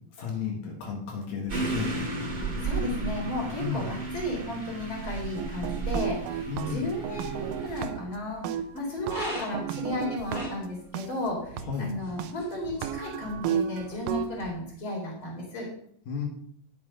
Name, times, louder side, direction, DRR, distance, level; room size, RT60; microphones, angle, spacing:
voice 1, 0.2-1.9 3.6-3.9 6.5-6.9 11.6-11.9 16.1-16.3, left 6 dB, 80° left, 0 dB, 3.5 m, -33 dB
sound 1, 1.5-7.8, right 3 dB, 30° right, 0.9 m, -34 dB
voice 2, 2.6-15.7, left 1 dB, 35° left, -2 dB, 4.4 m, -34 dB
sound 2, 3.1-14.5, equal, 15° left, 2.2 m, -45 dB
sound 3, 5.4-8.2 8.4-11.1 11.6-11.7 12.2-12.3 12.7-14.3, right 9 dB, 80° right, 2.1 m, -33 dB
10.0 x 7.7 x 5.4 m, 0.64 s
omnidirectional pair, 4.2 m